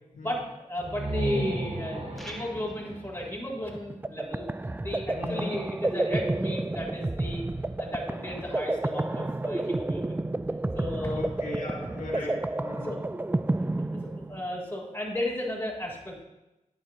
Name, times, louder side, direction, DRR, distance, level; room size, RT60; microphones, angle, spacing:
voice 1, 0.1-4.5 4.8-10.2 10.7-11.3 12.1-12.2 12.8-13.0 13.6-16.2, left 1 dB, 20° left, -3 dB, 3.6 m, -34 dB
sound 1, 0.8-4.5, right 1 dB, 50° right, 1.9 m, -35 dB
sound 2, 2.2-2.9, equal, ahead, 1.3 m, -46 dB
sound 3, 3.7-14.6, right 2 dB, 15° right, 0.3 m, -30 dB
voice 2, 5.1-5.5 11.1-12.9, left 2 dB, 90° left, -4 dB, 2.0 m, -36 dB
9.7 x 9.0 x 3.0 m, 1.0 s
cardioid pair, 40°, 13 cm